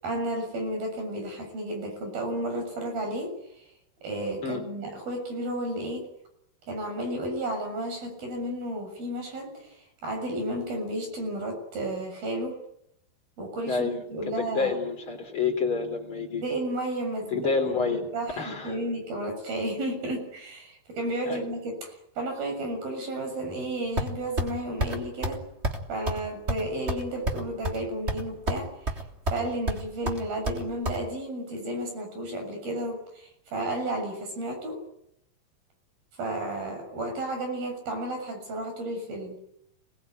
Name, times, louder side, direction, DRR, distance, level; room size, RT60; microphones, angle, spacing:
voice 1, 0.0-3.4 4.0-6.1 6.7-9.8 10.0-12.6 13.4-14.7 16.4-25.4 25.9-29.0 29.3-34.8 36.2-39.4, right 1 dB, 70° right, 4 dB, 8.7 m, -32 dB
voice 2, 13.7-14.0 14.4-16.4 17.3-18.1 18.4-18.8 21.2-21.4, left 5 dB, 35° left, 4 dB, 4.6 m, -28 dB
sound 1, 24.0-24.5 24.8-25.0 25.2-25.4 25.6-25.8 26.1-26.2 26.5-27.8 28.1-28.6 28.9-29.4 29.7-31.0, right 1 dB, 20° right, 3.0 m, -28 dB
28.0 x 21.5 x 9.5 m, 0.77 s
omnidirectional pair, 4.4 m